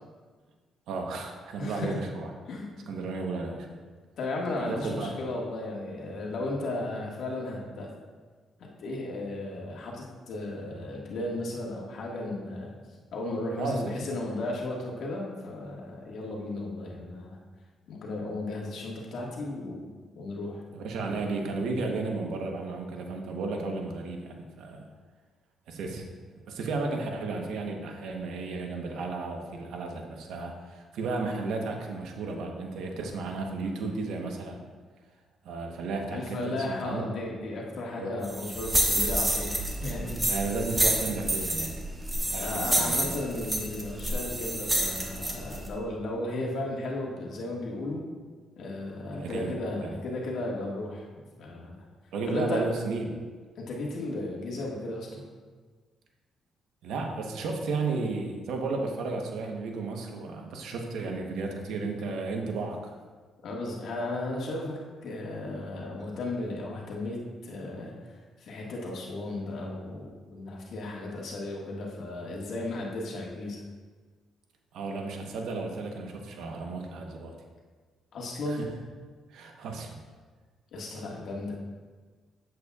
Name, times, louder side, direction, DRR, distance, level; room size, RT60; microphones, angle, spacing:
voice 1, 0.9-2.3 2.9-3.7 4.6-5.1 13.6-13.9 20.7-24.8 25.7-26.0 26.3-34.7 35.4-37.0 37.9-38.1 40.3-41.8 42.2-43.1 49.1-49.5 49.8-50.0 52.1-53.1 56.8-62.9 74.7-77.3 78.5-78.7 79.3-80.0, right 3 dB, 80° right, 2 dB, 1.0 m, -33 dB
voice 2, 1.6-2.0 2.5-2.7 4.2-7.9 8.6-12.7 13.1-17.4 17.9-19.9 20.1-20.6 36.1-40.3 42.3-48.0 48.6-51.8 52.3-52.7 53.6-55.2 63.4-73.6 78.1-78.7 80.7-81.5, left 2 dB, 70° left, -2 dB, 1.7 m, -35 dB
sound 1, 38.2-45.7, right 1 dB, 15° right, 1.1 m, -29 dB
8.2 x 7.9 x 2.4 m, 1.5 s
cardioid pair, 90°, 0 cm